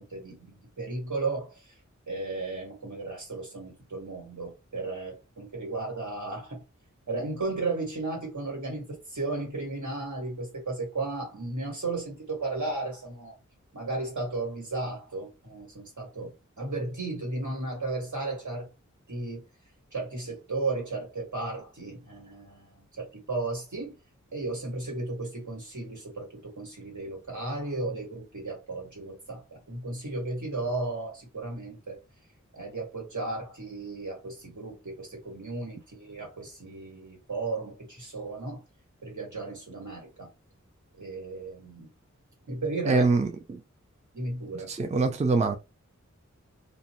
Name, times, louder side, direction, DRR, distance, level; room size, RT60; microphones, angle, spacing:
voice 1, 0.0-1.7 2.1-6.6 7.1-13.4 13.7-16.3 16.6-18.7 19.1-19.4 19.9-24.0 24.3-32.0 32.5-38.6 39.0-40.3 40.9-41.9 42.5-43.1 44.1-44.7, right 3 dB, 80° right, 1.6 m, -34 dB
voice 2, 42.9-43.6 44.7-45.6, right 3 dB, 25° right, 0.4 m, -24 dB
2.6 x 2.0 x 2.8 m
wide cardioid pair, 65°, 29 cm